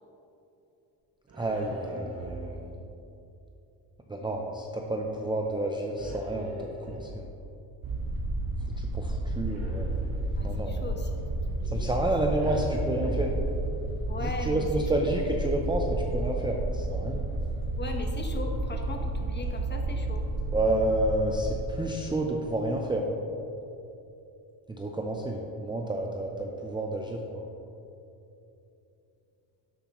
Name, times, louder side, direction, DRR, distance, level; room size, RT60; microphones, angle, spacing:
sound 1, 1.3-2.8 6.0-7.5 9.5-10.7 12.4-14.1, right 2 dB, 35° right, 1.8 m, -38 dB
voice 1, 1.4-2.8 4.1-7.3 8.8-9.9 10.4-10.8 11.7-13.3 14.2-17.3 20.5-23.2 24.8-27.5, right 1 dB, 10° right, 0 dB, 0.6 m, -30 dB
sound 2, 7.8-21.6, right 2 dB, 50° right, 1.4 m, -31 dB
voice 2, 10.4-11.1 11.5-12.4 14.1-15.2 17.7-20.2, left 3 dB, 25° left, 3 dB, 1.1 m, -39 dB
12.0 x 8.0 x 3.0 m, 2.9 s
cardioid pair, 115°, 44 cm